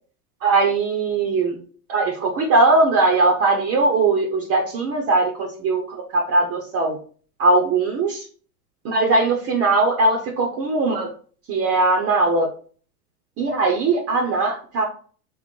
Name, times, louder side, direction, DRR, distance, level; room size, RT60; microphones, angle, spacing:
voice 1, 0.4-1.5 1.9-7.0 7.4-8.2 8.8-11.1 11.5-12.5 13.4-14.8, right 3 dB, 30° right, 1 dB, 0.7 m, -20 dB
3.8 x 2.0 x 3.7 m, 0.42 s
hypercardioid pair, 110°, 46 cm